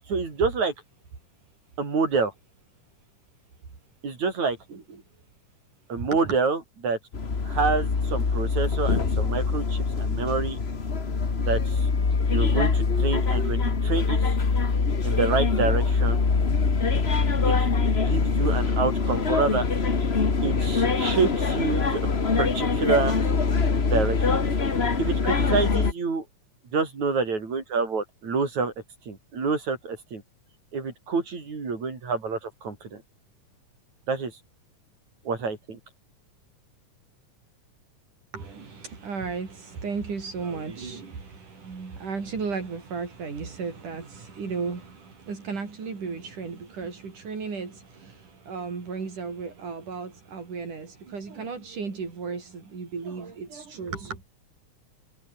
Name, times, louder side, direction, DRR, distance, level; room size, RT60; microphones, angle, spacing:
voice 1, 0.1-0.7 1.8-2.3 4.0-4.6 5.9-7.0 7.4-10.6 11.4-11.9 12.3-14.4 15.0-16.2 17.4-19.7 20.4-22.0 22.4-23.2 23.9-24.3 25.0-26.3 26.7-28.7 29.1-30.2 30.7-33.0 34.1-34.3 35.2-35.8, right 4 dB, 65° right, 6.5 m, -27 dB
sound 1, 7.1-25.9, left 4 dB, 30° left, 1.3 m, -24 dB
voice 2, 38.3-54.2, right 5 dB, 80° right, 6.7 m, -35 dB
omnidirectional pair, 3.5 m